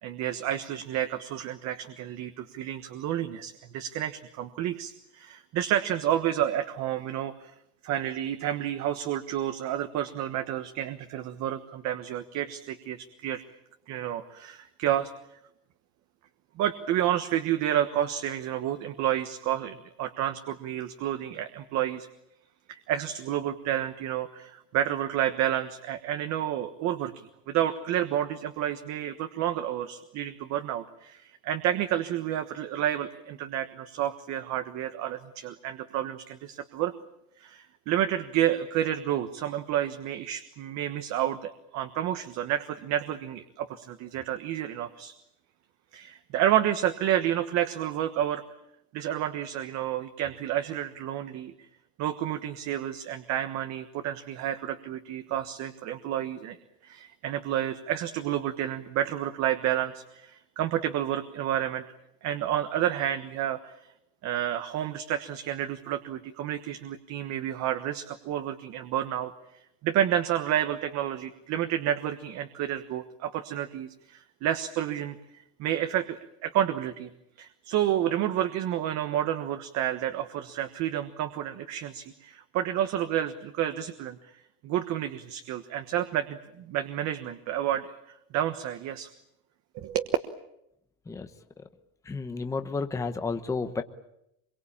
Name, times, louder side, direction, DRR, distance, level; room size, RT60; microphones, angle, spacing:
voice 1, 0.0-7.5 7.8-13.4 13.9-15.1 16.6-22.1 22.7-36.9 37.4-45.1 45.9-48.4 48.9-51.5 52.0-56.6 56.8-61.8 62.2-63.9 64.2-69.3 69.8-77.1 77.4-84.2 84.6-89.1 89.7-90.1, right 11 dB, 40° right, 8 dB, 1.4 m, -30 dB
voice 2, 92.1-93.8, left 4 dB, 5° left, 7 dB, 1.0 m, -31 dB
25.5 x 23.0 x 8.7 m, 0.81 s
cardioid pair, 170°, 43 cm